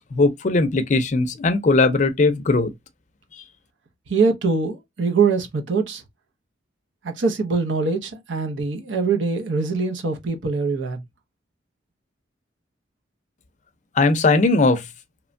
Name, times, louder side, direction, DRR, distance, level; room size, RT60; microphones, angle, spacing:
voice 1, 0.0-2.7 14.0-14.9, left 3 dB, 40° left, 0.4 m, -19 dB
voice 2, 4.1-6.0 7.0-11.0, right 4 dB, 85° right, 0.6 m, -23 dB
3.0 x 2.1 x 2.5 m
head